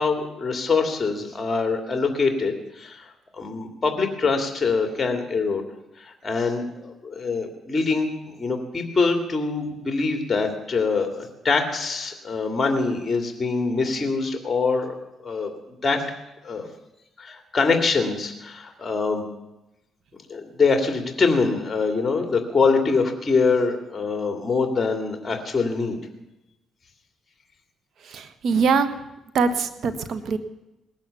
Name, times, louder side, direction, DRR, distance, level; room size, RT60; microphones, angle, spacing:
voice 1, 0.0-3.0 3.3-5.6 6.0-15.0 15.2-15.5 15.8-16.1 16.4-16.7 17.2-19.3 20.3-26.0, left 4 dB, 25° left, 5 dB, 2.6 m, -24 dB
voice 2, 28.1-28.9 29.3-30.4, right 5 dB, 65° right, 11 dB, 1.4 m, -22 dB
19.0 x 10.5 x 7.0 m, 0.95 s
cardioid pair, 90°, 0 cm